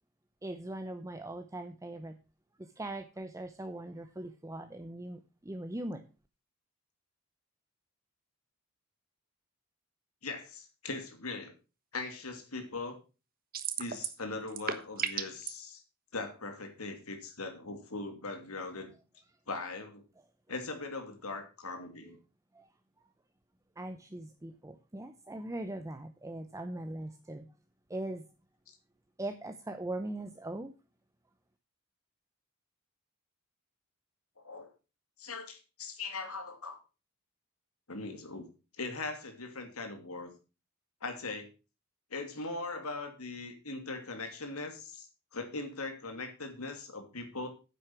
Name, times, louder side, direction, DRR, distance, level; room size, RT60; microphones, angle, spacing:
voice 1, 0.4-2.1 2.6-6.1 22.0-22.2 22.5-22.7 23.8-27.5 27.9-28.2 29.2-30.7, right 1 dB, 15° right, 7 dB, 0.7 m, -40 dB
voice 2, 10.2-11.5 11.9-13.0 13.8-15.8 16.1-18.9 19.5-20.0 20.5-22.2 28.7-28.8 34.4-34.7 35.2-36.8 37.9-38.5 38.8-40.3 41.0-41.5 42.1-47.5, left 3 dB, 90° left, 6 dB, 2.7 m, -40 dB
sound 1, 13.5-14.2 14.5-15.5, right 8 dB, 45° right, 1.3 m, -34 dB
9.9 x 7.9 x 6.0 m, 0.32 s
head